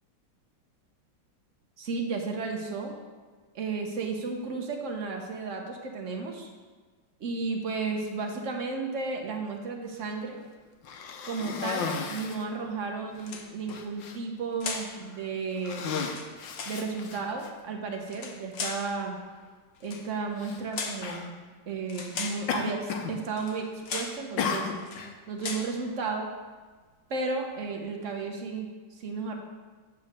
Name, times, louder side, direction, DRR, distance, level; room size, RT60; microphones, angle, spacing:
voice 1, 1.8-2.9 3.5-6.5 7.2-10.4 11.2-16.0 16.7-19.2 19.8-21.3 21.7-24.7 25.3-26.3 27.1-29.4, right 4 dB, 50° right, 2 dB, 1.1 m, -33 dB
Cough, 10.8-12.5 13.2-13.3 13.7-14.2 14.9-15.2 15.6-17.5 18.4-18.5 20.4-20.6 21.0-21.3 22.5-23.2 23.4-23.8 24.4-25.1, left 6 dB, 75° left, 1.4 m, -34 dB
sound 1, 13.2-13.8 14.6-15.0 15.9-16.8 18.0-18.9 19.8-20.1 20.7-21.1 21.9-22.5 23.4-23.6 23.8-24.2 24.8-25.1 25.4-25.7, left 4 dB, 55° left, 0.8 m, -37 dB
8.6 x 4.2 x 6.5 m, 1.4 s
omnidirectional pair, 2.2 m